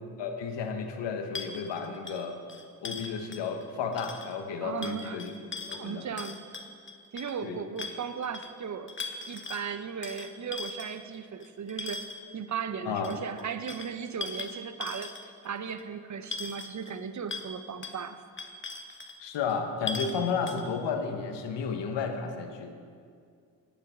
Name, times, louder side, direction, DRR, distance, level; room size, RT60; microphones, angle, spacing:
voice 1, 0.2-2.4 2.8-5.3 5.7-6.1 7.4-7.6 12.9-13.1 19.2-22.7, left 5 dB, 70° left, 5 dB, 1.1 m, -32 dB
sound 1, 1.4-3.7 3.9-4.4 4.8-7.4 7.8-8.5 8.9-9.7 10.0-12.3 13.0-15.5 15.8-15.9 16.3-17.0 17.3-17.5 17.8-18.0 18.4-19.2 19.5-19.6 19.9-20.2 20.5-20.7, left 3 dB, 25° left, 1.0 m, -39 dB
voice 2, 4.6-5.2 5.7-6.4 7.1-8.9 9.3-12.1 12.3-18.2, right 7 dB, 40° right, 11 dB, 0.7 m, -36 dB
10.0 x 6.8 x 5.7 m, 2.2 s
supercardioid pair, 50°, 45 cm